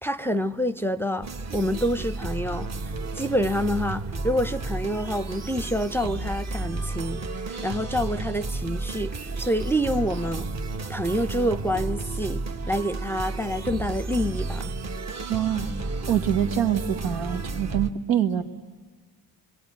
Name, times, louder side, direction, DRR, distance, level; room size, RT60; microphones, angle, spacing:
voice 1, 0.0-2.7 3.2-7.2 7.5-10.5 10.9-14.7, equal, 5° left, 0.7 m, -27 dB
sound 1, 1.2-17.9, right 3 dB, 35° right, 1.3 m, -32 dB
voice 2, 15.3-15.7 16.1-18.4, right 10 dB, 80° right, 1.8 m, -25 dB
26.0 x 22.0 x 9.3 m
supercardioid pair, 60°, 45 cm